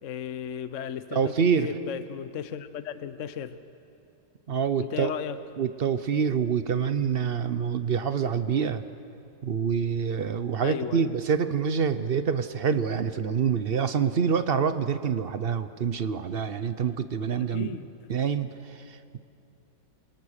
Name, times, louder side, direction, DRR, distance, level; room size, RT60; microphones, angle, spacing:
voice 1, 0.0-3.6 4.8-5.4 10.6-11.1 17.4-17.9, left 8 dB, 60° left, 12 dB, 0.9 m, -35 dB
voice 2, 1.1-1.7 4.5-5.1 5.6-8.8 9.4-17.8 18.1-19.2, right 6 dB, 55° right, 11 dB, 0.6 m, -26 dB
28.0 x 23.5 x 6.6 m, 2.6 s
omnidirectional pair, 1.9 m